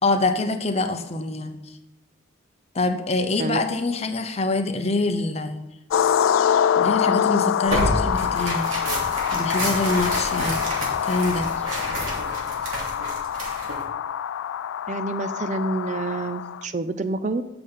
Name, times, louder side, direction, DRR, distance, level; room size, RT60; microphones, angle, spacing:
voice 1, 0.0-1.7 2.7-5.6 6.8-8.7 9.3-10.6 11.0-11.7, left 2 dB, 30° left, 7 dB, 0.7 m, -25 dB
sound 1, 5.9-16.6, left 8 dB, 85° left, 0.3 m, -25 dB
Tearing, 7.6-13.8, right 1 dB, 85° right, 3.1 m, -29 dB
voice 2, 14.9-17.4, right 2 dB, 35° right, 11 dB, 0.4 m, -28 dB
8.4 x 6.9 x 5.5 m, 0.96 s
head